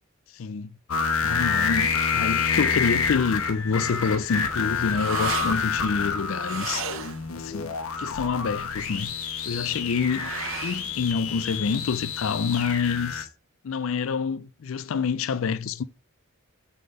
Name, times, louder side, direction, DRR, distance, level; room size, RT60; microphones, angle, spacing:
voice 1, 0.3-0.8 1.2-6.8 7.3-9.1 9.4-10.3 10.6-13.3 13.6-15.8, left 5 dB, 70° left, 0.4 m, -27 dB
sound 1, 0.9-13.2, left 5 dB, 85° left, 1.0 m, -28 dB
sound 2, 4.2-12.0, right 7 dB, 70° right, 0.9 m, -38 dB
7.7 x 3.5 x 5.2 m
head